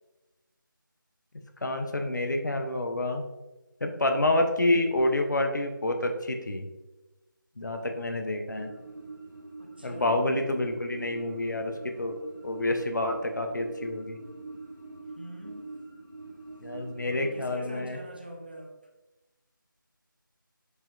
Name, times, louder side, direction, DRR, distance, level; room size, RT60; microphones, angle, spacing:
voice 1, 1.6-3.2 3.8-6.7 7.6-8.7 9.8-12.2 12.4-14.2 16.6-18.0, left 1 dB, 55° left, 5 dB, 0.5 m, -28 dB
sound 1, 8.5-17.5, right 3 dB, 60° right, 0.7 m, -44 dB
voice 2, 9.6-10.3 15.2-15.6 17.0-18.7, equal, 30° right, 0 dB, 0.4 m, -43 dB
4.8 x 2.8 x 2.3 m, 1.1 s
figure-of-eight pair, 165°, 11 cm